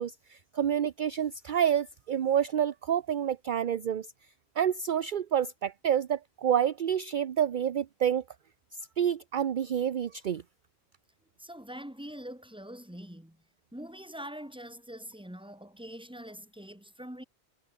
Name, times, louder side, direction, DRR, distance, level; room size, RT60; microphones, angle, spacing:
voice 1, 0.0-4.1 4.6-8.2 9.0-10.4, right 9 dB, 55° right, 0.8 m, -28 dB
voice 2, 11.4-13.4 13.7-17.2, equal, 5° right, 2.8 m, -44 dB
omnidirectional pair, 1.1 m